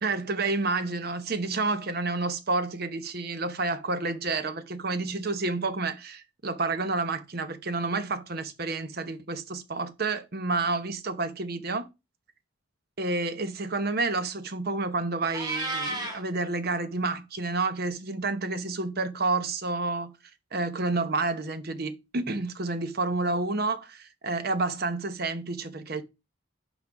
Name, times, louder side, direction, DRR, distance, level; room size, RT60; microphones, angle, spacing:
voice 1, 0.0-11.9 13.0-20.1 20.5-26.0, right 3 dB, 50° right, 0.9 m, -29 dB
Meow, 15.3-16.2, right 2 dB, 20° right, 2.0 m, -31 dB
6.0 x 5.2 x 5.2 m
head